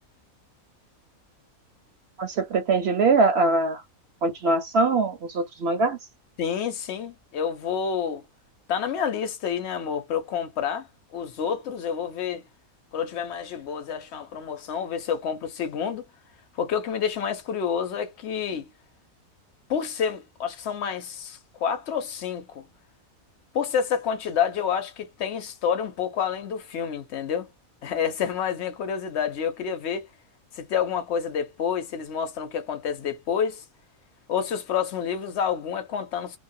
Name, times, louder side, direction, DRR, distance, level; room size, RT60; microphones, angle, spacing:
voice 1, 2.2-3.8 4.2-6.0, right 3 dB, 65° right, 0.7 m, -22 dB
voice 2, 6.4-8.2 8.7-12.4 12.9-16.0 16.6-18.7 19.7-22.6 23.5-27.5 27.8-30.1 30.5-33.6 34.3-36.4, left 7 dB, 60° left, 0.9 m, -28 dB
2.7 x 2.2 x 2.6 m
omnidirectional pair, 1.5 m